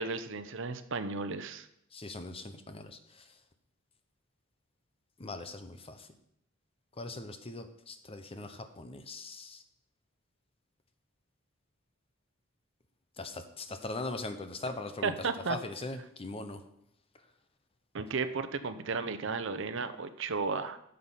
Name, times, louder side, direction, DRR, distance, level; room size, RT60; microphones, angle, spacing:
voice 1, 0.0-1.7 15.0-15.6 17.9-20.8, right 4 dB, 65° right, 10 dB, 0.7 m, -34 dB
voice 2, 1.9-3.3 5.2-6.1 7.0-9.6 13.2-16.6, left 2 dB, 30° left, 8 dB, 0.8 m, -41 dB
9.4 x 6.6 x 5.7 m, 0.76 s
head